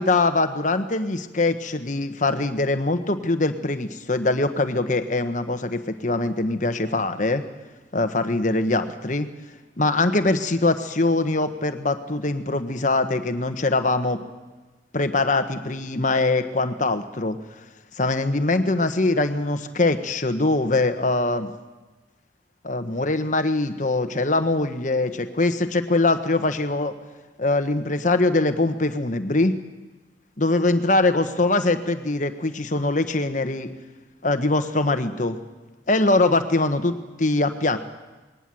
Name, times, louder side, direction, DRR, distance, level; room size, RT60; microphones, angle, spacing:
voice 1, 0.0-7.4 7.9-9.3 9.8-14.2 14.9-17.4 18.0-21.5 22.6-27.0 27.4-29.6 30.4-33.7 34.2-35.4 35.9-37.8, left 2 dB, 45° left, 9 dB, 1.3 m, -22 dB
20.5 x 18.5 x 7.7 m, 1.2 s
head